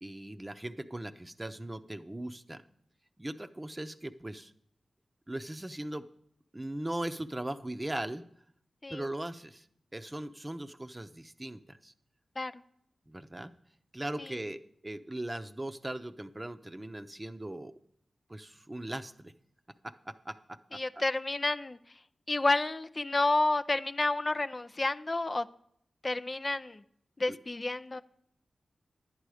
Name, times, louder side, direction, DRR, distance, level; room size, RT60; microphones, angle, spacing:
voice 1, 0.0-2.6 3.2-4.5 5.3-6.1 6.5-8.2 8.9-9.7 9.9-11.9 13.1-13.5 13.9-17.7 18.3-19.3 19.8-21.0 27.3-27.4, right 1 dB, 25° right, 0.7 m, -39 dB
voice 2, 20.7-21.8 22.3-25.5 26.0-26.8 27.2-28.0, left 2 dB, 40° left, 0.4 m, -30 dB
11.0 x 9.3 x 4.9 m
cardioid pair, 40°, 0 cm